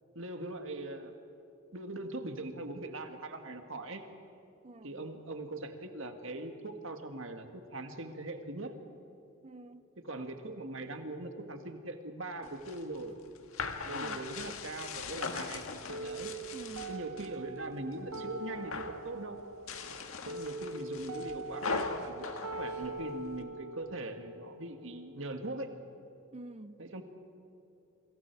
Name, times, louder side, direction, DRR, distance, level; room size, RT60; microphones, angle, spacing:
voice 1, 0.2-1.1 1.7-4.1 4.8-8.8 10.0-13.1 13.9-15.6 16.0-16.4 16.9-19.4 20.3-25.7 26.8-27.0, right 2 dB, 60° right, 2.0 m, -41 dB
voice 2, 4.6-5.0 9.4-9.8 13.8-14.2 16.5-16.9 26.3-26.9, right 2 dB, 30° right, 0.5 m, -47 dB
sound 1, 12.4-17.3 17.7-18.3 18.5-19.0 19.5-23.4, left 4 dB, 70° left, 1.7 m, -40 dB
sound 2, 15.9-25.9, right 2 dB, 80° right, 1.3 m, -43 dB
28.0 x 25.5 x 4.8 m
head